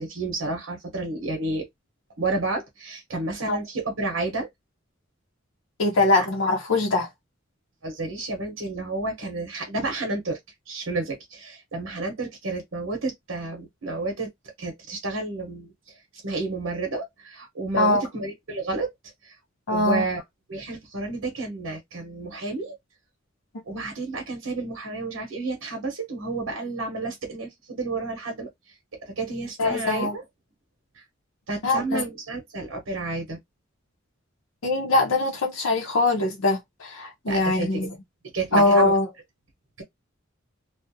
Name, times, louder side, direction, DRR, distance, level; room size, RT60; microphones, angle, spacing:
voice 1, 0.0-1.7 2.2-4.5 6.2-6.3 7.8-10.4 10.7-14.3 14.6-15.7 16.2-18.9 19.2-19.4 19.7-20.2 20.5-22.8 23.6-28.5 29.0-30.2 30.9-31.0 31.5-33.4 37.3-37.9 38.3-39.0, right 3 dB, 85° right, 0.8 m, -30 dB
voice 2, 5.8-7.1 17.8-18.0 19.7-20.0 29.6-30.1 31.6-32.0 34.6-37.9 38.5-39.1, left 2 dB, 90° left, 0.6 m, -22 dB
2.4 x 2.0 x 2.6 m
head